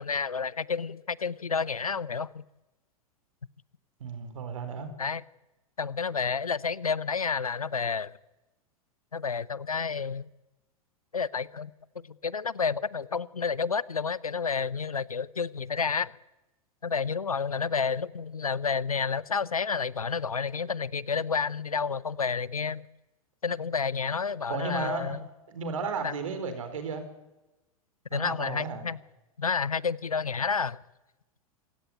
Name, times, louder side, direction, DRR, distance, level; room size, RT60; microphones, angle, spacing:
voice 1, 0.0-2.4 5.0-5.2 5.8-8.2 9.1-10.3 11.1-11.7 12.2-16.1 16.8-22.8 23.4-25.2 26.0-26.1 28.1-29.0 29.4-30.8, left 5 dB, 80° left, 0.8 m, -30 dB
voice 2, 4.0-4.9 24.5-25.2 25.5-27.0 28.1-28.8, right 4 dB, 65° right, 4.5 m, -34 dB
27.0 x 16.5 x 9.3 m
figure-of-eight pair, 90°, 18 cm